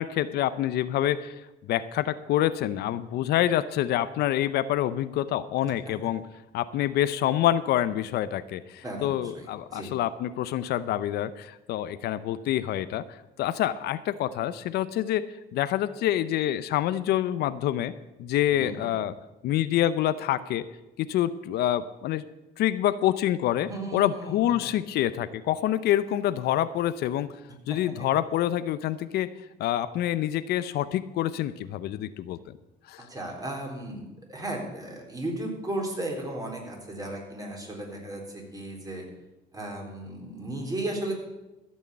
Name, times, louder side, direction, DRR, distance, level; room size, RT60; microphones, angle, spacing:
voice 1, 0.0-6.2 6.5-13.0 13.4-17.9 18.2-19.1 19.4-20.6 21.0-22.2 22.6-27.3 27.7-29.3 29.6-32.4 32.9-33.1, left 12 dB, 75° left, 14 dB, 0.6 m, -27 dB
voice 2, 8.8-9.9 18.5-18.9 23.7-24.8 28.0-28.1 33.0-39.1 39.5-41.1, right 1 dB, 20° right, 0 dB, 3.8 m, -35 dB
14.5 x 6.4 x 8.5 m, 1.0 s
cardioid pair, 110°, 17 cm